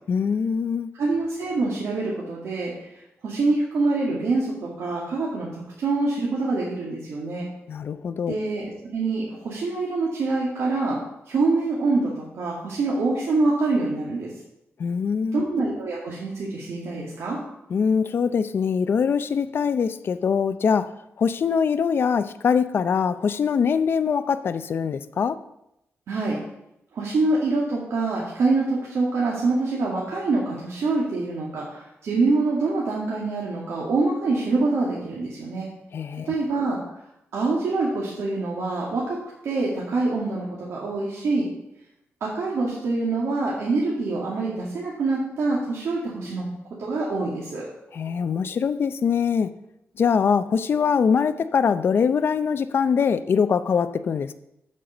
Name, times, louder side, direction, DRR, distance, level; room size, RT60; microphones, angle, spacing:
voice 1, 0.1-0.9 7.7-8.3 14.8-15.4 17.7-20.9 21.2-25.4 35.9-36.3 47.9-49.5 50.0-54.3, left 6 dB, 50° left, 12 dB, 0.5 m, -23 dB
voice 2, 1.0-2.7 3.2-7.5 8.3-11.0 11.3-14.3 15.3-17.4 26.1-26.4 26.9-35.7 36.3-36.8 37.3-39.2 39.4-41.5 42.2-46.5 46.8-47.6, right 3 dB, 75° right, -5 dB, 2.1 m, -25 dB
7.5 x 6.6 x 6.9 m, 0.83 s
wide cardioid pair, 160°, 5 cm